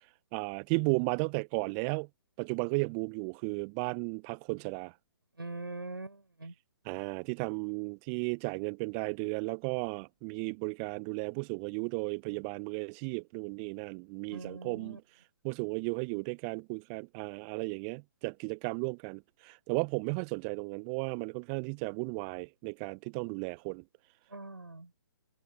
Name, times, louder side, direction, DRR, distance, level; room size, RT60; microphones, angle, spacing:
voice 1, 0.3-2.1 2.4-4.9 6.8-15.0 15.4-23.8, right 37 dB, 25° right, 0.8 m, -34 dB
voice 2, 5.4-6.5 14.3-15.0 24.3-24.9, right 2 dB, 80° right, 6.8 m, -42 dB
figure-of-eight pair, 130°, 12 cm